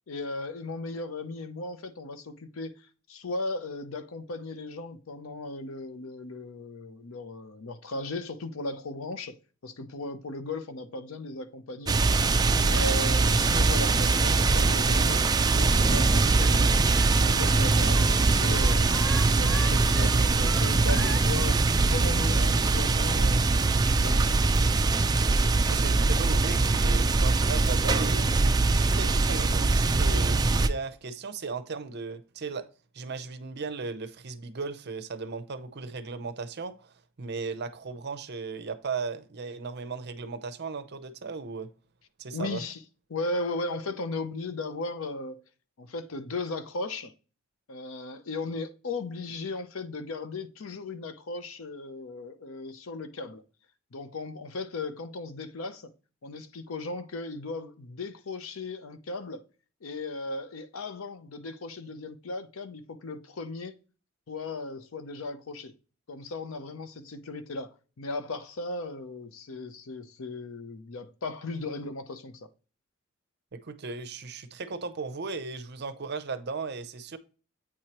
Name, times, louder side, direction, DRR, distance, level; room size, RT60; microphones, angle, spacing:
voice 1, 0.1-9.3 9.6-12.0 12.5-16.8 17.2-21.6 21.9-24.9 42.3-42.8 43.1-45.4 45.8-47.1 47.7-53.4 53.9-55.9 56.2-59.4 59.8-63.7 64.3-65.7 66.1-72.5, left 2 dB, 85° left, 0.7 m, -37 dB
sound 1, 11.9-30.7, right 3 dB, 20° right, 0.3 m, -22 dB
Singing, 14.3-21.2, equal, 5° left, 1.5 m, -41 dB
voice 2, 25.7-28.2 28.7-32.7 32.9-41.7 42.2-42.6 73.5-77.2, right 4 dB, 55° right, 0.6 m, -36 dB
8.6 x 4.7 x 2.9 m
head